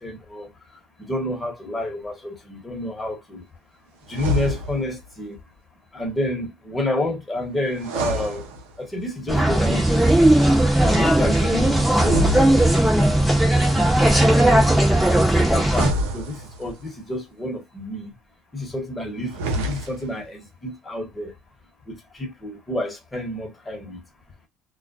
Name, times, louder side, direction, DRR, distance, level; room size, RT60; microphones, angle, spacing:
voice 1, 0.0-0.5 1.0-3.4 4.1-5.4 5.9-8.4 8.8-10.3 10.8-12.7 13.0-13.3 14.3-18.1 18.5-21.3 21.9-24.0, left 1 dB, 20° left, 1.1 m, -30 dB
sound 1, 4.1-5.0 7.7-9.1 11.9-13.1 15.6-16.9 19.2-20.2, equal, 85° right, 0.6 m, -28 dB
sound 2, 9.3-15.9, right 1 dB, 5° right, 0.9 m, -17 dB
2.3 x 2.1 x 2.6 m
supercardioid pair, 85°, 0 cm